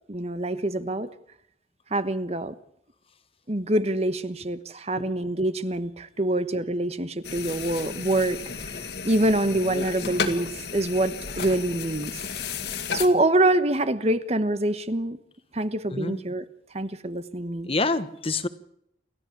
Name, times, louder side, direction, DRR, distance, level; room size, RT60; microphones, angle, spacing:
voice 1, 0.1-1.1 1.9-2.5 3.5-12.2 12.9-15.2 15.5-16.4 16.7-17.7, right 1 dB, 35° right, 12 dB, 1.3 m, -25 dB
sound 1, 7.2-13.1, left 5 dB, 60° left, 2.2 m, -33 dB
voice 2, 15.9-16.2 17.7-18.5, left 3 dB, 30° left, 12 dB, 1.3 m, -27 dB
29.0 x 14.0 x 8.6 m, 0.75 s
head